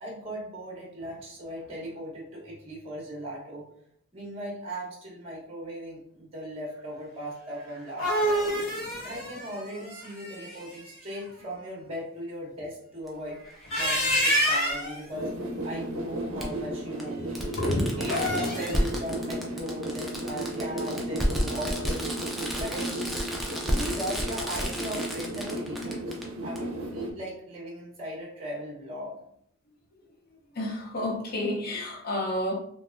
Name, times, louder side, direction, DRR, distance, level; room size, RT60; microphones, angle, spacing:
voice 1, 0.0-3.7 4.1-8.5 9.0-13.4 13.7-15.3 15.6-17.2 17.6-22.0 22.6-22.9 23.6-26.0 26.4-29.2, equal, 30° right, -3 dB, 0.9 m, -38 dB
sound 1, 7.7-10.8 13.5-15.0 18.0-18.9, equal, 70° left, 1.2 m, -27 dB
Fireworks, 13.1-13.2 14.7-14.8 16.4-16.5 17.0-17.1 17.4-26.2 26.6-26.7, equal, ahead, 0.4 m, -31 dB
sound 2, 15.1-27.1, right 1 dB, 70° right, 0.5 m, -34 dB
voice 2, 17.2-18.0 30.5-32.5, left 1 dB, 45° left, 0 dB, 0.6 m, -30 dB
3.4 x 2.4 x 2.4 m, 0.68 s
head